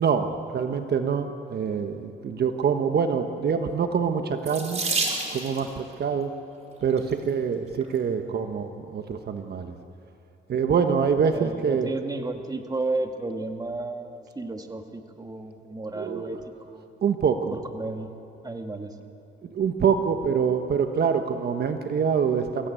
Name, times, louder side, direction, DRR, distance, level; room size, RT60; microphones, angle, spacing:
voice 1, 0.0-4.8 5.3-6.3 6.8-9.7 10.5-11.9 15.9-16.4 17.0-17.6 19.4-22.7, right 6 dB, 55° right, 6 dB, 1.3 m, -25 dB
Water tap faucet / Sink (filling or washing), 4.4-5.7 6.7-7.1 7.8-7.9 8.2-8.4, right 3 dB, 35° right, 4.4 m, -29 dB
voice 2, 11.3-16.4 16.7-16.9 17.5-18.1 18.4-18.9, right 2 dB, 20° right, 5 dB, 1.8 m, -33 dB
23.5 x 15.5 x 9.1 m, 2.8 s
cardioid pair, 90°, 20 cm